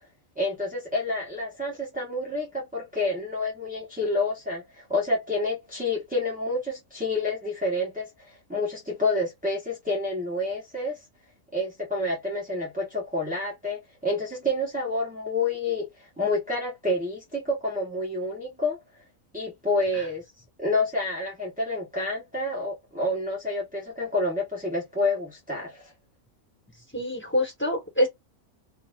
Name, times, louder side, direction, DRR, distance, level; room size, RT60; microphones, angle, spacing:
voice 1, 0.4-11.0 11.5-18.8 19.3-20.2 20.6-25.9, left 2 dB, 10° right, 0.5 m, -28 dB
voice 2, 26.9-28.1, left 1 dB, 10° left, 1.1 m, -25 dB
2.6 x 2.4 x 3.1 m
omnidirectional pair, 1.5 m